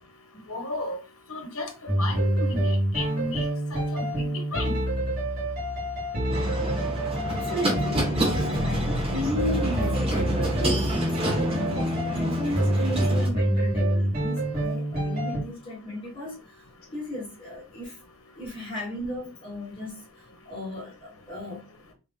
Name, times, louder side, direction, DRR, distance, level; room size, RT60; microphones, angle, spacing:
voice 1, 0.5-1.0 1.3-4.7, left 2 dB, 70° left, 1.1 m, -34 dB
sound 1, 1.9-15.4, right 1 dB, 45° right, 2.1 m, -27 dB
sound 2, 6.3-13.3, right 1 dB, 25° right, 1.4 m, -29 dB
voice 2, 7.1-16.6 16.9-18.0 18.4-21.7, left 1 dB, 25° left, 1.6 m, -35 dB
3.3 x 3.1 x 3.7 m
head